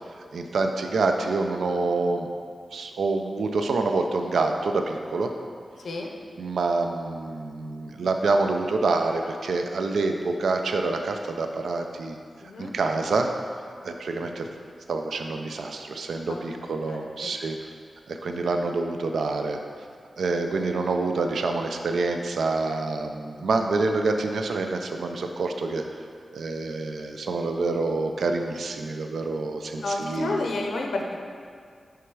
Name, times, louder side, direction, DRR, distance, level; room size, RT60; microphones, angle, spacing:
voice 1, 0.3-2.3 2.7-5.3 6.4-12.2 12.6-13.3 13.8-14.5 14.9-17.7 18.1-19.6 20.2-25.8 26.3-30.4, right 3 dB, 90° right, 4 dB, 0.3 m, -27 dB
voice 2, 12.4-12.7 16.3-17.1 29.8-31.2, left 2 dB, 80° left, 1 dB, 0.5 m, -31 dB
6.0 x 3.5 x 4.6 m, 2.1 s
wide cardioid pair, 105°, 0 cm